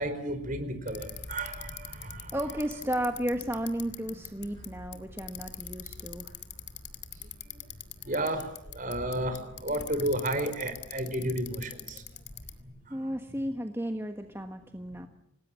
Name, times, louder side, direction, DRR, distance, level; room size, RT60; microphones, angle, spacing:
voice 1, 0.0-2.4 8.0-12.0 12.9-13.0, right 1 dB, 45° right, 9 dB, 4.7 m, -32 dB
Bicycle, 0.9-12.6, left 8 dB, 60° left, 2.5 m, -44 dB
voice 2, 2.3-6.3 12.9-15.1, right 1 dB, 10° right, 5 dB, 1.4 m, -33 dB
27.5 x 19.5 x 7.4 m, 0.77 s
head